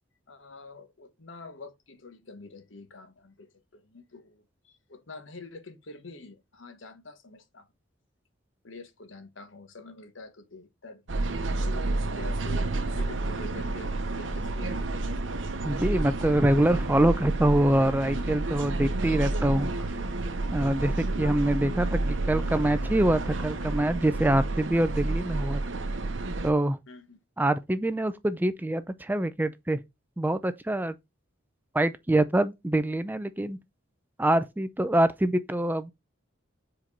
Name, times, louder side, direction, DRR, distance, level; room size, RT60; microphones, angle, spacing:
voice 1, 0.3-7.7 8.6-11.1 11.6-14.8 21.6-21.7 26.9-27.2, left 3 dB, 75° left, 1.2 m, -47 dB
sound 1, 11.1-26.5, right 2 dB, 75° right, 0.9 m, -30 dB
voice 2, 15.6-20.0 20.5-25.6 26.4-26.8 27.4-29.8 30.2-31.0 31.7-33.6 34.2-35.9, right 1 dB, 10° right, 0.5 m, -25 dB
4.9 x 4.4 x 5.3 m
head